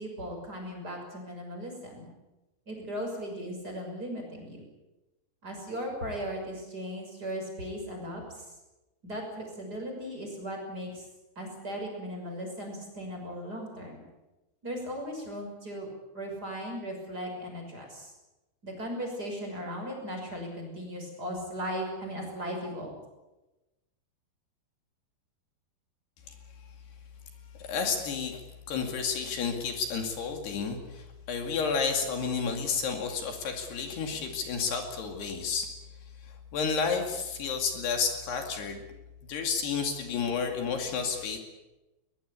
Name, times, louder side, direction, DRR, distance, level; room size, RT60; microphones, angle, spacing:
voice 1, 0.0-2.1 2.7-4.7 5.4-8.5 9.0-11.1 11.4-14.0 14.6-18.1 18.6-22.9, equal, 20° right, 1 dB, 6.4 m, -37 dB
voice 2, 27.6-28.4 28.7-35.7 36.2-38.8 39.3-41.4, left 5 dB, 70° left, 4 dB, 4.3 m, -31 dB
22.5 x 20.5 x 8.4 m, 1.0 s
omnidirectional pair, 5.1 m